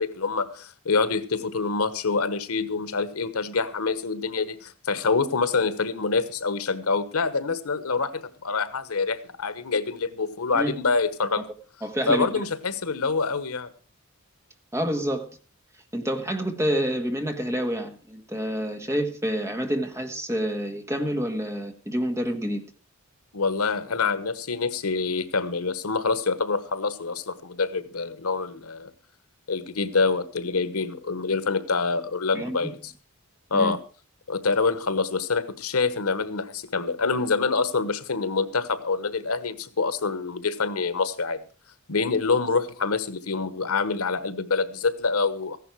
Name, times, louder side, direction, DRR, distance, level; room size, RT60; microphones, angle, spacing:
voice 1, 0.0-11.5 12.1-13.7 23.3-28.9 29.5-32.9 33.5-33.8 34.3-41.4 41.9-45.6, left 4 dB, 90° left, 1.2 m, -26 dB
voice 2, 11.8-12.3 14.7-15.3 15.9-22.6 32.3-32.7 33.5-33.7, equal, 15° right, 1.7 m, -28 dB
15.0 x 11.0 x 4.7 m
head